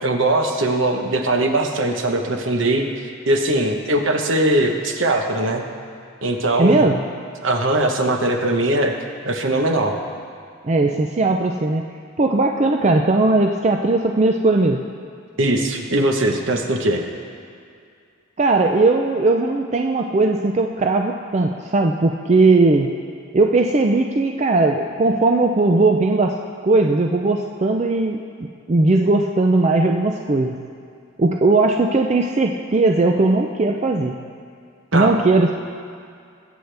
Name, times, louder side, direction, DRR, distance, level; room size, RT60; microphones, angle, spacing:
voice 1, 0.0-5.6 6.2-6.8 7.4-8.9 9.2-10.0 15.4-17.0 34.9-35.1, right 1 dB, 65° right, 3 dB, 1.1 m, -20 dB
voice 2, 6.6-7.0 10.6-11.8 12.2-14.8 18.4-22.9 23.3-26.3 26.6-28.2 28.7-30.6 31.2-34.2 34.9-35.5, right 2 dB, 30° right, 2 dB, 0.4 m, -18 dB
22.5 x 8.1 x 3.4 m, 2.3 s
head